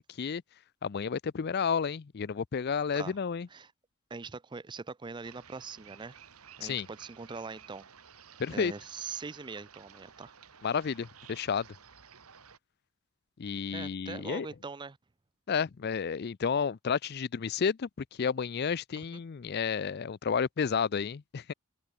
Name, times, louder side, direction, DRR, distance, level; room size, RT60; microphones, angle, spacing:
voice 1, 0.8-3.5 6.6-6.9 8.4-8.7 10.6-11.7 13.4-14.5 15.5-17.9 18.2-21.5, left 6 dB, 45° left, 0.4 m, -31 dB
voice 2, 4.1-6.2 6.6-7.9 8.5-10.3 13.7-15.0 19.0-19.2, right 4 dB, 20° right, 0.4 m, -42 dB
sound 1, 5.2-12.6, right 7 dB, 90° right, 2.1 m, -54 dB
head